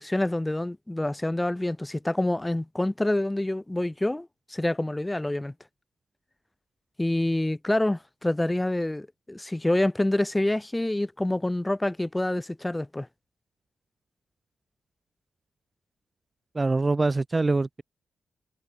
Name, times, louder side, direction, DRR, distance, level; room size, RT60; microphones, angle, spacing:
voice 1, 0.0-5.5 7.0-13.1, left 1 dB, 15° left, 1.6 m, -27 dB
voice 2, 16.5-17.8, right 3 dB, 30° right, 0.7 m, -24 dB
hypercardioid pair, 40°, 0 cm